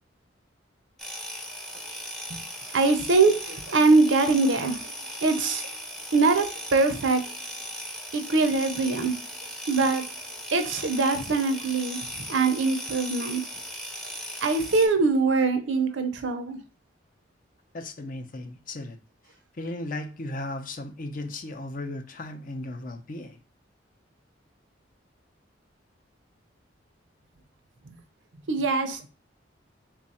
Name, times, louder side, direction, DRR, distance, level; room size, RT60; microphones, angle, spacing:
sound 1, 1.0-14.9, equal, 5° left, 0.6 m, -38 dB
voice 1, 2.7-4.9 5.2-5.6 6.1-7.2 8.1-9.2 9.7-10.0 10.5-13.4 14.4-16.6 28.5-29.1, right 3 dB, 75° right, 0.6 m, -23 dB
voice 2, 17.7-19.0 19.5-23.4, left 2 dB, 45° left, 0.5 m, -36 dB
3.5 x 2.4 x 4.1 m
head